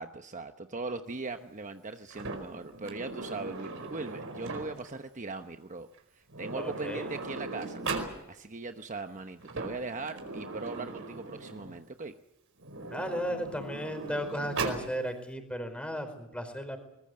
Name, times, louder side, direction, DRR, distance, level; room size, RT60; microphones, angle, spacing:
voice 1, 0.0-5.9 6.2-7.8 8.3-12.2, right 3 dB, 35° right, 7 dB, 1.0 m, -39 dB
Sliding door, 2.1-5.0 5.9-6.0 6.3-8.2 9.3-11.8 12.6-14.9, right 3 dB, 65° right, 4.9 m, -38 dB
voice 2, 6.5-7.1 12.9-16.8, equal, 5° left, 7 dB, 4.6 m, -35 dB
23.0 x 21.5 x 7.8 m, 0.86 s
head